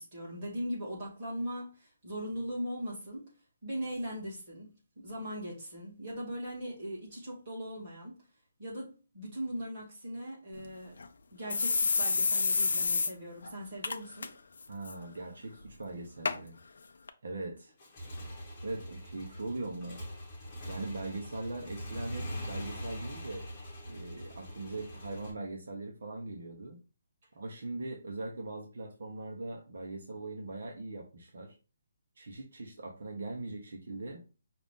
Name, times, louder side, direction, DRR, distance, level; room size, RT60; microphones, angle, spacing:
voice 1, 0.0-3.3 3.6-4.7 5.0-8.1 8.6-10.9 11.3-14.3, equal, 25° right, 2.2 m, -39 dB
sound 1, 10.6-10.7 11.0-11.1 11.5-13.1 13.4-13.5 13.8-14.3 14.6-14.9 15.6-15.7 16.2-16.4 17.1-17.2, left 4 dB, 65° left, 0.5 m, -28 dB
voice 2, 14.7-16.6 17.2-17.7 18.6-20.1 20.6-23.5 23.9-26.8 27.3-31.5 32.2-34.2, right 2 dB, 60° right, 0.9 m, -40 dB
Motorcycle / Engine, 17.7-25.3, equal, 15° left, 1.0 m, -42 dB
5.6 x 2.6 x 3.6 m
hypercardioid pair, 180°, 0 cm